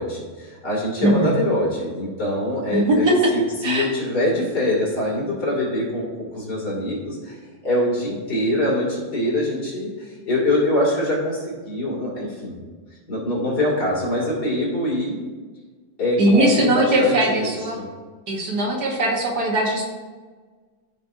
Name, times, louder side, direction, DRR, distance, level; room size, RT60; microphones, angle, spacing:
voice 1, 0.0-7.4 7.6-12.5 13.1-15.2 16.0-17.5 17.7-17.8, left 1 dB, 60° left, -5 dB, 3.1 m, -24 dB
voice 2, 1.0-1.4 2.7-3.3 3.6-3.9 16.2-17.8 18.3-19.8, right 1 dB, 60° right, -1 dB, 1.8 m, -20 dB
14.0 x 5.1 x 2.7 m, 1.4 s
omnidirectional pair, 2.0 m